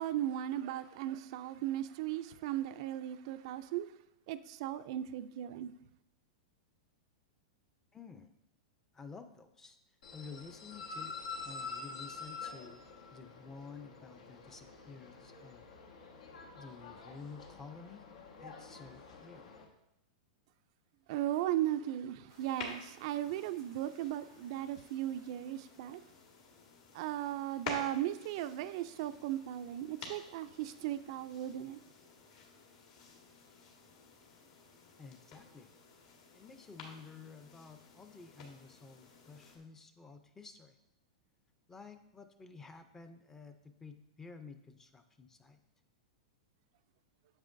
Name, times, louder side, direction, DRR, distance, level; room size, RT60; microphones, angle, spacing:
voice 1, 0.0-3.9 4.3-5.7 21.1-26.0 26.9-31.8, right 12 dB, 50° right, 0.3 m, -37 dB
voice 2, 7.9-8.3 8.9-9.8 10.1-11.2 11.4-12.9 13.1-15.7 16.5-18.1 18.4-19.6 35.0-35.7 36.3-40.8 41.7-45.6, left 4 dB, 10° left, 0.4 m, -52 dB
sound 1, 10.0-19.6, left 4 dB, 90° left, 1.3 m, -47 dB
sound 2, 22.3-39.6, left 4 dB, 65° left, 1.7 m, -51 dB
8.8 x 7.5 x 2.5 m
supercardioid pair, 150°, 4 cm